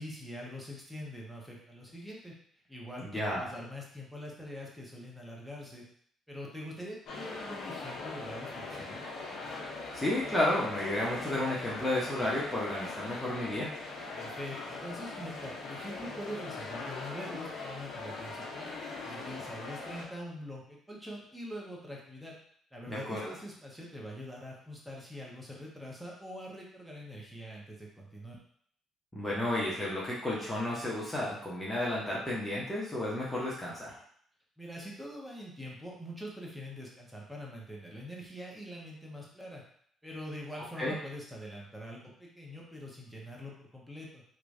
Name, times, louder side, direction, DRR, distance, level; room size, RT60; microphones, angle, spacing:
voice 1, 0.0-2.3 2.7-5.8 6.3-9.0 14.1-18.7 19.0-22.3 22.7-28.4 34.6-39.6 40.0-44.2, equal, ahead, -3 dB, 1.0 m, -44 dB
voice 2, 3.0-3.5 9.9-13.7 22.9-23.3 29.1-33.9 40.8-41.0, left 1 dB, 15° left, -6 dB, 0.9 m, -32 dB
sound 1, 7.1-20.0, left 3 dB, 65° left, 0.8 m, -41 dB
3.0 x 2.3 x 2.7 m, 0.64 s
hypercardioid pair, 60°, 0 cm